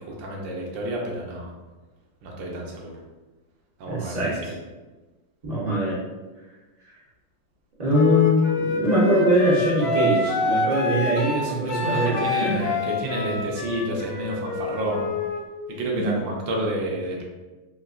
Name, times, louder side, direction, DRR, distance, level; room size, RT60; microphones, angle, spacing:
voice 1, 0.0-1.5 2.2-3.0 3.8-4.6 11.1-15.1 15.7-17.2, right 1 dB, 80° right, -1 dB, 1.4 m, -30 dB
voice 2, 3.9-4.5 5.4-6.0 6.9-7.0 7.8-12.7 15.9-16.2, equal, 60° right, -8 dB, 0.4 m, -22 dB
Wind instrument woodwind instrument, 7.9-15.4, left 3 dB, 70° left, 0.9 m, -26 dB
3.8 x 2.7 x 2.4 m, 1.2 s
omnidirectional pair, 2.1 m